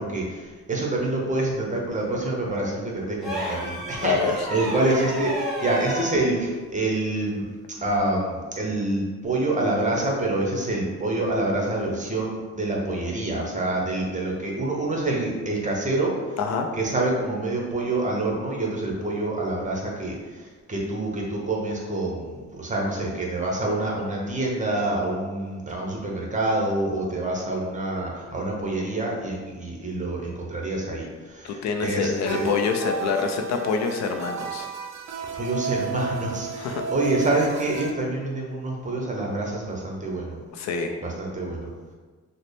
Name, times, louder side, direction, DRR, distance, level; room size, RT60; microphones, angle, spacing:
voice 1, 0.0-4.2 4.5-7.5 7.8-16.1 16.7-32.5 35.3-40.4 41.0-41.7, right 2 dB, 25° right, -1 dB, 0.8 m, -27 dB
sound 1, 3.2-6.2 7.8-8.0, equal, ahead, 1.2 m, -31 dB
voice 2, 4.0-4.4 16.4-16.7 31.4-34.7 36.6-36.9 40.5-41.0, left 5 dB, 65° left, 5 dB, 0.5 m, -26 dB
sound 2, 32.3-37.9, right 5 dB, 65° right, 0.5 m, -33 dB
3.8 x 2.1 x 3.3 m, 1.4 s
cardioid pair, 90°, 30 cm